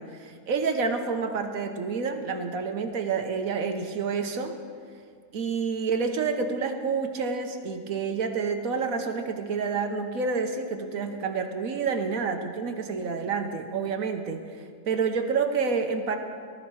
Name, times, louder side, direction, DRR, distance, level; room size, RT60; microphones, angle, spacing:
voice 1, 0.0-4.6 5.3-14.4 14.9-16.2, right 5 dB, 65° right, 6 dB, 1.4 m, -28 dB
19.0 x 13.5 x 4.8 m, 2.1 s
omnidirectional pair, 1.6 m